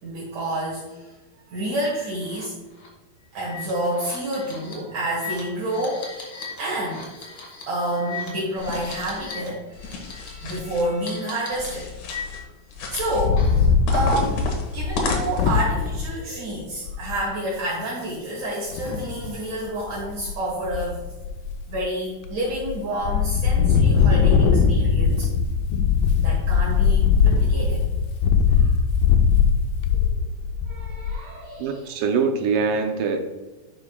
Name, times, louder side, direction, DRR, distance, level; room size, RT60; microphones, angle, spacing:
voice 1, 0.0-1.1 1.5-2.5 3.3-6.3 6.6-7.1 7.7-11.9 12.9-14.4 14.7-21.0 21.7-25.3 26.2-27.8 28.5-28.7 29.9-30.2 30.7-31.9, right 1 dB, 65° right, -5 dB, 2.7 m, -29 dB
sound 1, 2.2-2.4 2.8-2.9 3.4-9.5 9.7-10.5 11.1-12.6 12.9-13.7, left 5 dB, 45° left, 2.1 m, -38 dB
sound 2, 8.6-9.2 9.7-10.9 11.5-12.4 12.7-13.3 13.9-15.6, left 3 dB, 65° left, 2.3 m, -32 dB
Wind, 12.9-16.0 16.6-16.7 16.9-17.2 18.7-19.3 19.8-20.3 20.6-21.8 22.3-22.7 23.0-31.2, left 6 dB, 80° left, 2.3 m, -20 dB
voice 2, 31.6-33.2, right 5 dB, 80° right, 4 dB, 1.9 m, -23 dB
11.0 x 5.8 x 2.3 m, 1.1 s
omnidirectional pair, 4.3 m